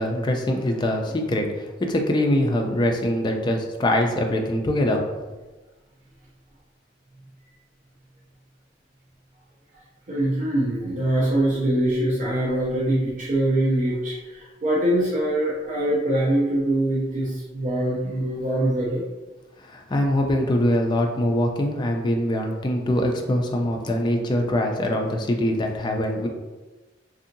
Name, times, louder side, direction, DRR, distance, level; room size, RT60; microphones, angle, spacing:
voice 1, 0.0-5.0 19.6-26.3, left 1 dB, 25° left, 2 dB, 0.3 m, -23 dB
voice 2, 10.1-19.0, right 1 dB, 40° right, -6 dB, 0.5 m, -23 dB
2.6 x 2.6 x 2.5 m, 1.2 s
head